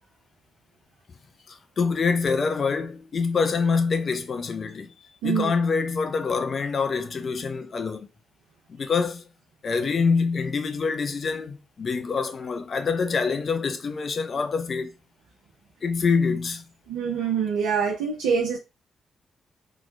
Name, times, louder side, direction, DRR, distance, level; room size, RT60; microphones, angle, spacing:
voice 1, 1.5-8.1 8.7-9.3 9.6-14.9 15.8-16.6, left 5 dB, 55° left, 0.7 m, -25 dB
voice 2, 16.9-18.6, right 6 dB, 85° right, 0.8 m, -25 dB
3.8 x 3.1 x 2.3 m
hypercardioid pair, 45°, 0 cm